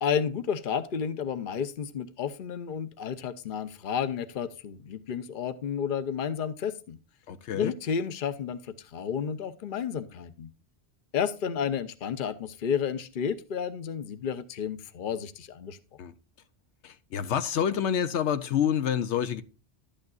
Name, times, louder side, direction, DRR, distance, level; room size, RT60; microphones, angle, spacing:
voice 1, 0.0-7.0 7.5-8.6 8.9-10.5 11.1-15.8, left 7 dB, 50° left, 0.9 m, -31 dB
voice 2, 7.3-7.7 16.0-16.1 16.8-19.4, left 9 dB, 80° left, 1.0 m, -28 dB
11.5 x 8.9 x 2.4 m
omnidirectional pair, 1.2 m